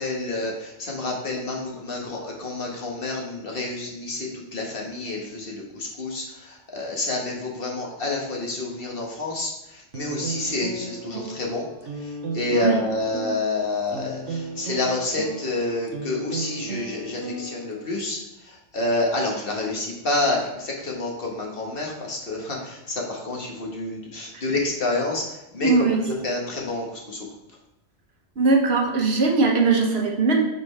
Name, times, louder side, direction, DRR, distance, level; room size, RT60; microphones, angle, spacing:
voice 1, 0.0-11.6 12.3-18.2 18.7-25.2 25.5-25.7 26.2-27.2, left 2 dB, 55° left, -1 dB, 1.5 m, -28 dB
sound 1, 9.9-18.0, right 3 dB, 90° right, 1.2 m, -35 dB
voice 2, 12.5-12.8 25.6-26.1 28.4-30.4, right 4 dB, 65° right, 0 dB, 1.3 m, -20 dB
8.6 x 5.5 x 3.3 m, 0.91 s
omnidirectional pair, 1.2 m